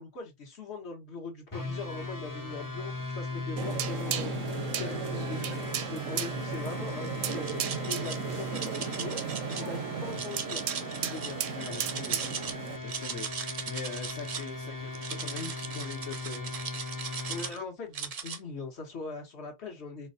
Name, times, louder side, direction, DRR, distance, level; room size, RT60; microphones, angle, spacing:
voice 1, 0.0-4.3 4.8-5.6 5.9-9.2 9.5-11.4 17.3-20.1, left 4 dB, 60° left, 1.4 m, -41 dB
sound 1, 1.5-17.5, left 2 dB, 25° left, 0.5 m, -38 dB
sound 2, 3.6-12.8, right 8 dB, 85° right, 0.9 m, -35 dB
sound 3, 7.0-8.2 8.5-9.6 10.1-12.5 12.8-14.5 14.9-17.6 17.9-18.4, right 6 dB, 50° right, 0.4 m, -38 dB
voice 2, 11.5-12.2 12.8-13.3 13.7-16.5, left 5 dB, 80° left, 1.1 m, -42 dB
4.4 x 2.2 x 2.6 m
omnidirectional pair, 1.3 m